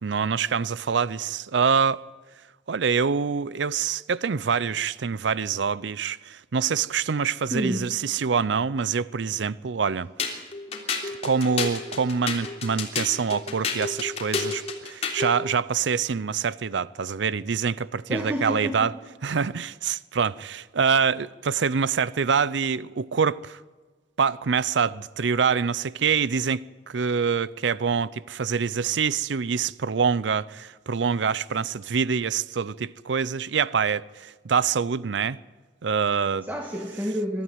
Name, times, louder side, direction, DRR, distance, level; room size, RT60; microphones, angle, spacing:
voice 1, 0.0-2.0 2.7-10.4 11.2-18.9 19.2-23.6 24.2-35.4 35.8-36.5, right 6 dB, 70° right, 0.5 m, -25 dB
voice 2, 7.5-7.8 18.1-18.9 36.4-37.4, equal, 10° right, 1.5 m, -29 dB
sound 1, 10.2-15.3, left 4 dB, 35° left, 3.2 m, -30 dB
22.5 x 13.0 x 9.3 m
head